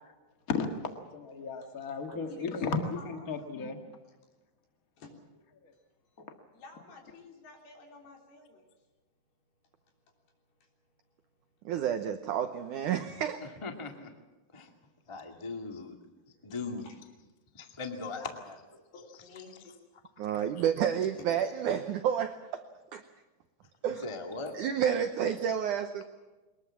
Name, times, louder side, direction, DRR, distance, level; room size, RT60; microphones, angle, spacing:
voice 1, 1.1-3.8 5.6-5.7 6.2-6.3, left 5 dB, 85° left, 5 dB, 0.7 m, -34 dB
voice 2, 2.1-3.3 5.0-5.2 6.5-8.7 10.3-10.7 16.3-17.0 18.0-18.3 18.9-19.7 20.3-20.5 21.2-21.3 21.7-21.8 25.7-26.0, left 4 dB, 65° left, 1 dB, 5.5 m, -51 dB
voice 3, 11.6-13.5 20.2-22.6 22.9-23.0 23.8-24.0 24.5-26.0, right 9 dB, 90° right, 8 dB, 1.8 m, -30 dB
voice 4, 13.4-14.1 14.5-14.7 15.1-16.0 16.4-16.9 17.5-18.5 20.3-20.4 23.9-24.6, left 3 dB, 40° left, 3 dB, 0.4 m, -39 dB
23.0 x 20.5 x 7.3 m, 1.2 s
omnidirectional pair, 4.8 m